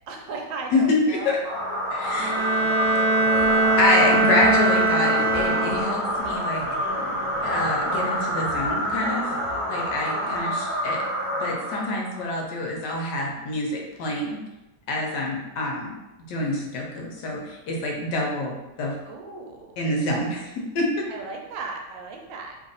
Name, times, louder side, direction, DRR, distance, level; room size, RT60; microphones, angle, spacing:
voice 1, 0.1-1.6 2.3-3.1 10.1-10.6 19.1-19.7 21.1-22.6, right 3 dB, 85° right, 1 dB, 1.4 m, -37 dB
voice 2, 0.7-1.4 1.9-2.4 3.8-6.6 7.4-9.3 9.7-11.0 11.4-14.4 14.9-15.9 16.3-18.9 19.8-21.1, left 2 dB, 70° left, -1 dB, 1.3 m, -26 dB
sound 1, 1.4-12.2, equal, 30° right, 1.4 m, -27 dB
Bowed string instrument, 2.2-6.1, right 2 dB, 65° right, 1.0 m, -22 dB
3.2 x 2.5 x 3.9 m, 1.0 s
omnidirectional pair, 2.0 m